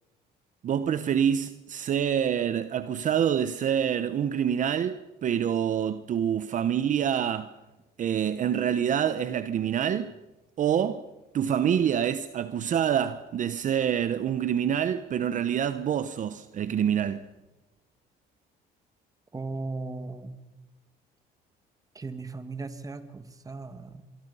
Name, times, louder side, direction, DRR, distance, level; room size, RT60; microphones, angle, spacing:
voice 1, 0.6-7.6 8.0-10.1 10.6-11.0 11.3-17.2, right 9 dB, 50° right, 0.9 m, -26 dB
voice 2, 19.3-20.4 21.9-24.1, right 3 dB, 20° right, 2.0 m, -37 dB
24.5 x 24.0 x 5.6 m
cardioid pair, 110°, 17 cm